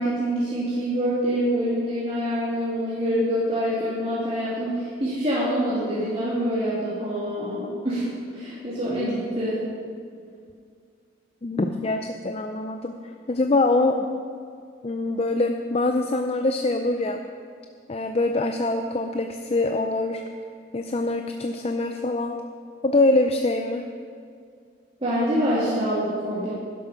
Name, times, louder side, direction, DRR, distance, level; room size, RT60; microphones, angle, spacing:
voice 1, 0.0-9.6 25.0-26.5, equal, 30° right, -10 dB, 2.7 m, -25 dB
voice 2, 11.4-14.1 14.8-17.2 17.9-20.2 20.7-22.4 22.8-23.8, left 2 dB, 35° left, 5 dB, 0.5 m, -24 dB
12.0 x 11.5 x 5.1 m, 2.3 s
head